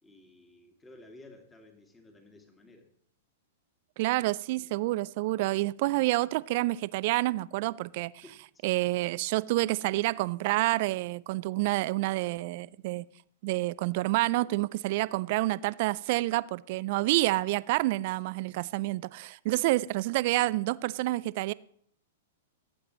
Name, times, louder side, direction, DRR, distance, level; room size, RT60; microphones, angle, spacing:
voice 1, 0.0-2.9 8.2-8.7, left 2 dB, 15° left, 2.1 m, -54 dB
voice 2, 4.0-8.2 8.6-13.1 13.4-21.5, right 19 dB, 50° right, 0.3 m, -28 dB
17.5 x 8.7 x 3.1 m
hypercardioid pair, 110°, 0 cm